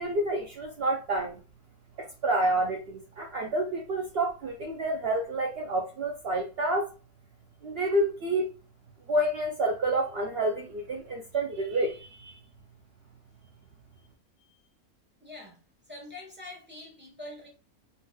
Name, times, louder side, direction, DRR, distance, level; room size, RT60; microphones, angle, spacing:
voice 1, 0.0-1.4 2.0-6.9 7.6-8.5 9.1-12.4, right 1 dB, 65° right, 0.6 m, -29 dB
voice 2, 15.2-15.6 15.9-17.5, left 2 dB, 10° right, 0.9 m, -45 dB
3.7 x 2.5 x 2.2 m
omnidirectional pair, 1.5 m